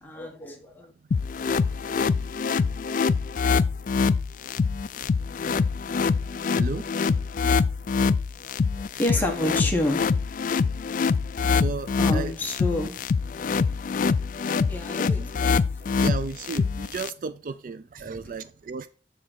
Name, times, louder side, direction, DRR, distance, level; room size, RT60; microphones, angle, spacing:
voice 1, 0.0-0.9 8.7-10.2 12.0-13.0 14.7-15.5 15.8-15.9 18.0-18.2, left 1 dB, 10° left, 1.4 m, -29 dB
sound 1, 1.1-17.1, left 5 dB, 45° left, 0.3 m, -25 dB
voice 2, 6.5-6.9 9.1-9.2 11.6-12.3 15.2-15.3 16.0-18.9, right 4 dB, 50° right, 0.4 m, -34 dB
7.4 x 3.8 x 6.1 m
head